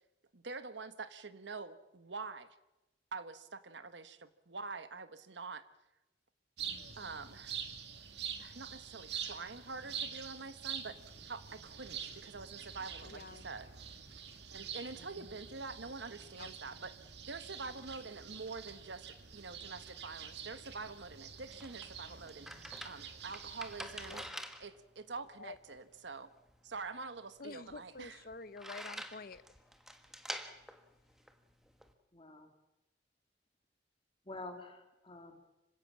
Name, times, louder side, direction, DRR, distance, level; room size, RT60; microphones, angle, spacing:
voice 1, 0.3-2.6 3.1-5.6 7.0-7.6 8.4-11.0 11.2-13.7 14.5-24.3 24.6-26.3 26.6-28.2, right 4 dB, 85° right, 1.3 m, -46 dB
sound 1, 6.6-24.3, right 7 dB, 70° right, 2.1 m, -46 dB
voice 2, 13.0-13.4 16.4-16.5 24.1-24.2 25.4-25.6 27.4-29.4, left 4 dB, 55° left, 0.8 m, -48 dB
voice 3, 14.5-15.3 32.1-32.5 34.3-35.4, left 2 dB, 30° left, 2.4 m, -49 dB
sound 2, 21.3-31.9, equal, 5° right, 1.5 m, -48 dB
26.0 x 16.5 x 7.4 m
head